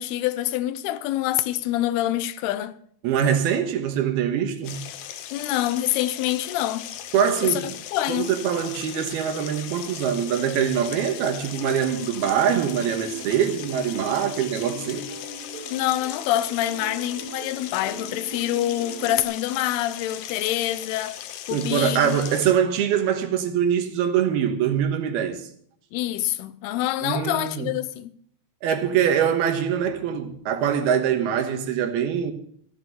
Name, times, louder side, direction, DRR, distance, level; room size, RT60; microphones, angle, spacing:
voice 1, 0.0-2.7 5.3-6.9 7.4-7.6 7.9-8.3 15.7-21.2 21.5-22.2 25.9-28.1, left 14 dB, 90° left, 2.7 m, -26 dB
voice 2, 3.0-4.8 7.1-7.7 8.1-15.0 21.5-25.4 27.0-27.7 28.6-32.3, right 8 dB, 85° right, 3.3 m, -23 dB
sound 1, 4.6-22.5, left 11 dB, 70° left, 2.2 m, -38 dB
Plucked string instrument, 11.8-19.2, right 3 dB, 65° right, 2.9 m, -41 dB
14.5 x 8.8 x 6.8 m
omnidirectional pair, 4.4 m